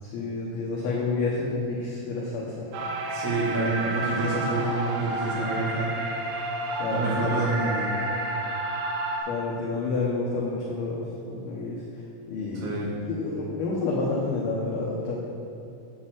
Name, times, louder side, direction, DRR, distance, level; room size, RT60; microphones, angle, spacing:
voice 1, 0.0-2.9 6.8-7.3 9.3-12.7 13.0-15.2, left 3 dB, 85° left, -5 dB, 2.2 m, -29 dB
sound 1, 2.7-9.2, right 2 dB, 80° right, 2.3 m, -30 dB
voice 2, 3.1-5.9 6.9-7.9 12.6-12.9, right 2 dB, 65° right, -7 dB, 4.3 m, -28 dB
10.0 x 4.3 x 7.6 m, 2.8 s
omnidirectional pair, 6.0 m